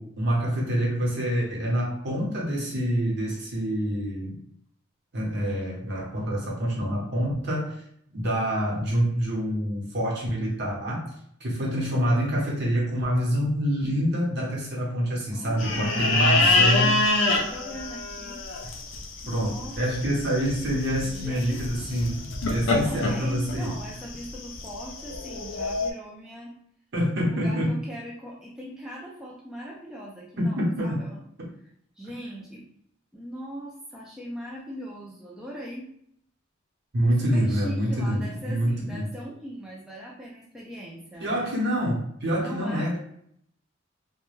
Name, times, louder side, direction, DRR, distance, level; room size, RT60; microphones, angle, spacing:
voice 1, 0.0-4.3 5.1-7.8 8.1-11.1 11.4-16.9 19.3-23.7 26.9-27.8 30.6-31.0 36.9-39.1 41.2-43.0, equal, 55° right, -4 dB, 0.9 m, -26 dB
voice 2, 15.3-18.4 19.2-19.8 21.0-22.1 22.8-26.5 27.2-31.2 32.0-32.6 33.1-35.9 37.2-41.5 42.4-42.9, equal, 5° right, -5 dB, 0.3 m, -40 dB
sound 1, 15.6-25.9, left 2 dB, 65° left, 0.4 m, -26 dB
2.3 x 2.1 x 3.0 m, 0.68 s
head